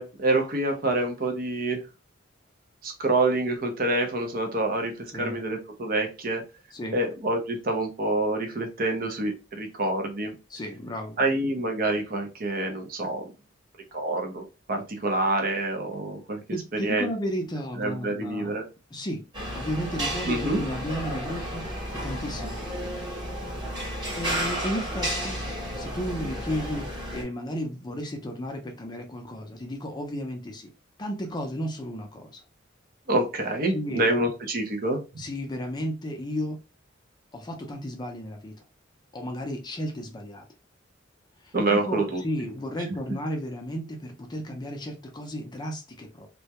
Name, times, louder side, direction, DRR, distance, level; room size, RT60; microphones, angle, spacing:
voice 1, 0.0-1.8 2.8-6.4 6.9-10.3 11.2-13.3 13.9-16.4 16.8-17.1 17.8-18.6 20.3-20.6 33.1-35.0 41.5-42.2, right 2 dB, 45° right, 4 dB, 0.6 m, -27 dB
voice 2, 10.5-11.2 16.5-18.6 18.9-19.2 19.5-21.7 21.9-22.7 24.2-25.4 25.8-26.9 27.1-30.7 31.0-32.4 33.7-34.1 35.2-36.6 37.3-38.5 39.1-40.4 41.7-46.3, equal, 20° left, 3 dB, 0.4 m, -33 dB
sound 1, 19.3-27.2, equal, 20° right, 1.0 m, -32 dB
2.2 x 2.1 x 2.8 m, 0.29 s
head